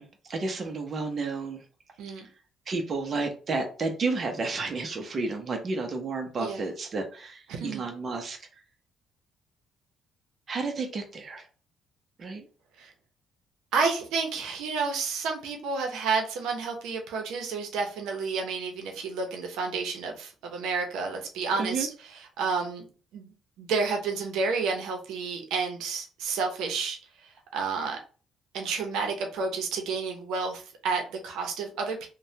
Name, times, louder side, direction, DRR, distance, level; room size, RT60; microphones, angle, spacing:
voice 1, 0.0-1.6 2.7-8.4 10.5-11.5 12.2-12.4 21.6-21.9, right 3 dB, 35° right, 3 dB, 0.6 m, -31 dB
voice 2, 7.5-7.8 12.8-12.9 13.7-22.8 23.1-28.0 28.5-32.1, right 4 dB, 85° right, 3 dB, 0.6 m, -30 dB
3.1 x 2.1 x 2.7 m, 0.37 s
cardioid pair, 125°, 0 cm